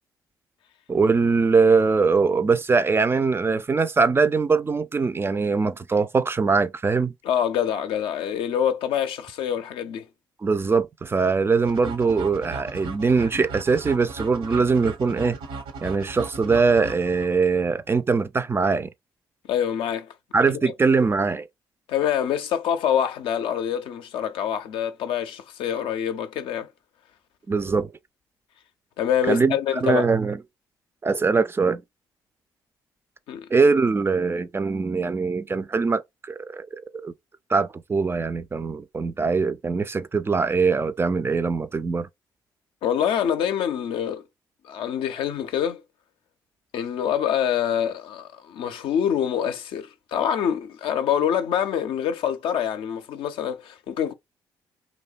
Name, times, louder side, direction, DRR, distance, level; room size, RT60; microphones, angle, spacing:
voice 1, 0.9-7.1 10.4-15.4 15.8-18.9 20.3-21.5 27.5-27.9 29.3-30.4 31.0-31.8 33.5-36.7 37.0-37.1 37.5-42.1, right 4 dB, 25° right, 0.3 m, -22 dB
voice 2, 7.2-10.1 19.5-20.1 20.5-20.6 21.9-26.7 29.0-30.1 33.3-33.5 42.8-44.2 44.6-45.8 46.7-54.1, left 9 dB, 70° left, 0.4 m, -25 dB
sound 1, 11.7-17.6, right 4 dB, 75° right, 0.7 m, -37 dB
2.7 x 2.1 x 2.3 m
hypercardioid pair, 50°, 9 cm